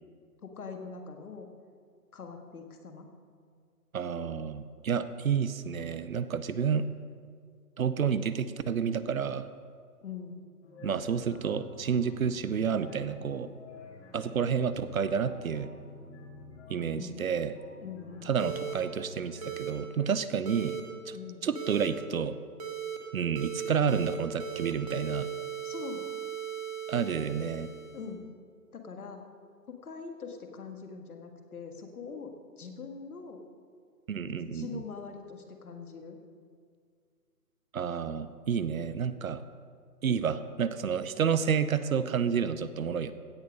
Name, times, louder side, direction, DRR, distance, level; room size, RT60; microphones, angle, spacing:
voice 1, 0.4-1.5 2.1-3.1 10.0-10.5 16.9-17.5 17.8-18.3 21.1-21.4 25.6-26.1 27.9-28.2 28.7-29.2 29.7-33.4 34.2-36.2, left 5 dB, 65° left, 5 dB, 1.7 m, -43 dB
voice 2, 3.9-6.9 7.8-9.5 10.8-13.5 14.1-15.7 16.7-17.5 18.2-20.8 21.1-21.2 21.4-22.4 23.1-25.3 26.9-27.7 34.1-34.8 37.7-39.4 40.0-43.1, right 7 dB, 60° right, 13 dB, 0.7 m, -30 dB
sound 1, 10.6-19.5, left 3 dB, 45° left, 2.0 m, -48 dB
sound 2, 18.4-18.7 19.4-19.7 20.5-20.8 21.6-21.9 22.6-23.0 23.4-24.1 24.4-28.1, right 8 dB, 25° right, 0.8 m, -37 dB
16.5 x 6.7 x 5.2 m, 2.1 s
hypercardioid pair, 160°, 48 cm